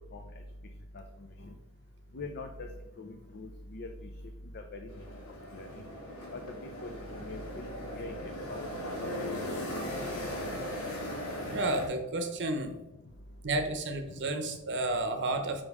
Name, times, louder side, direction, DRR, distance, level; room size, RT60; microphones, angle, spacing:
voice 1, 2.1-2.5 3.0-3.9 4.7-4.8 5.6-5.7 6.3-6.4 6.8-7.7 8.0-8.1 8.5-8.7 9.2-9.3, left 3 dB, 50° left, 4 dB, 0.6 m, -42 dB
sound 1, 4.9-11.9, left 1 dB, 85° left, 2.4 m, -38 dB
voice 2, 11.5-12.8 13.4-15.6, right 2 dB, 55° right, 7 dB, 0.8 m, -31 dB
5.4 x 5.3 x 4.8 m, 1.0 s
head